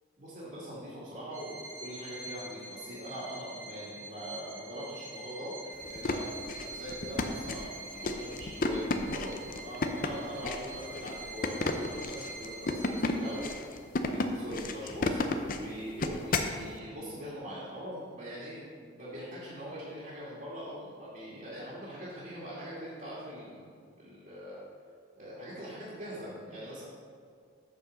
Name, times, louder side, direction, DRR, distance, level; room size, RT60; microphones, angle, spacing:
voice 1, 0.2-13.7 13.9-15.2 15.5-23.7 24.0-24.6 25.1-26.8, equal, 45° right, -8 dB, 2.1 m, -42 dB
Bowed string instrument, 1.3-13.8, right 2 dB, 80° right, 2.2 m, -46 dB
sound 1, 5.8-16.6, left 3 dB, 45° left, 0.5 m, -33 dB
8.4 x 4.6 x 6.4 m, 2.1 s
head